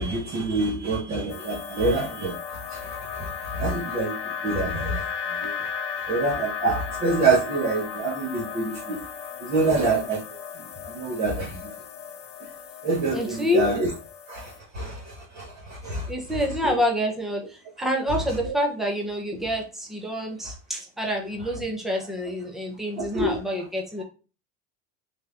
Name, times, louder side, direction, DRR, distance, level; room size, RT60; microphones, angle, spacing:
voice 1, 0.0-4.2 4.4-5.0 5.4-5.7 6.1-9.0 9.4-10.2 10.6-11.7 12.4-12.5 12.8-13.9 14.3-16.1 16.6-16.8 18.4-18.5 23.0-23.4, right 3 dB, 25° right, 0.8 m, -26 dB
sound 1, 1.3-14.6, left 7 dB, 80° left, 0.8 m, -35 dB
voice 2, 13.1-13.7 16.1-24.0, left 1 dB, ahead, 0.5 m, -27 dB
3.4 x 2.7 x 3.6 m
cardioid pair, 160°, 36 cm